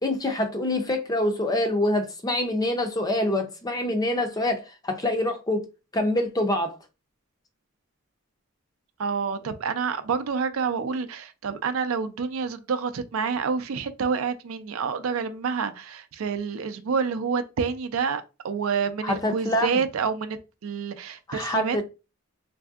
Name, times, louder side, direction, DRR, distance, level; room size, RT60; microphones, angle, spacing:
voice 1, 0.0-5.7 5.9-6.8 19.0-19.8 21.3-21.8, left 1 dB, 20° left, 0.5 m, -25 dB
voice 2, 9.0-21.8, right 5 dB, 85° right, 0.4 m, -28 dB
3.3 x 2.6 x 2.3 m
head